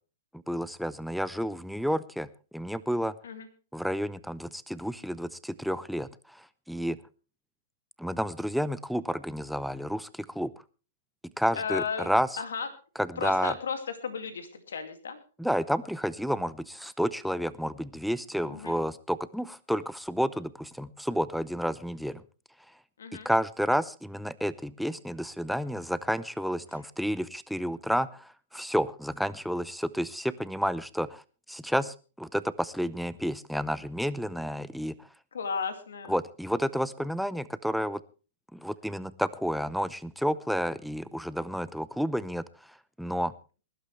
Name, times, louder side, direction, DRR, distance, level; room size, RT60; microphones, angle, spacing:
voice 1, 0.5-2.3 2.5-3.1 3.7-6.1 6.7-7.0 8.0-10.5 11.4-12.3 13.0-13.5 15.4-22.2 23.2-31.2 31.5-34.9 36.1-38.0 38.5-42.4 43.0-43.3, equal, ahead, 15 dB, 0.6 m, -30 dB
voice 2, 11.5-12.1 12.4-12.7 13.2-15.2 18.4-18.7 23.0-23.3 26.7-26.8 35.3-36.1, left 6 dB, 85° left, 8 dB, 2.3 m, -34 dB
21.0 x 11.5 x 3.3 m, 0.35 s
hypercardioid pair, 135°, 0 cm